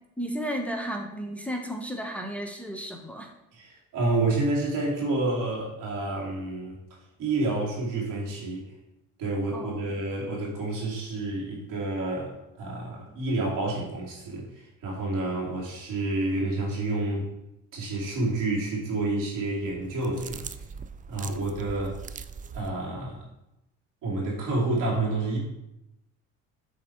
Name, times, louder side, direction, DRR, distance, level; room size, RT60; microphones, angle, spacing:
voice 1, 0.2-3.3 9.5-9.8, equal, 5° left, 3 dB, 0.9 m, -33 dB
voice 2, 3.5-6.8 7.2-8.7 9.2-17.3 17.7-20.6 21.1-22.0 22.5-23.2 24.0-25.4, right 2 dB, 75° right, -4 dB, 2.6 m, -29 dB
sound 1, 19.8-22.7, right 6 dB, 25° right, 0.4 m, -41 dB
7.5 x 3.7 x 4.4 m, 0.87 s
supercardioid pair, 75°, 32 cm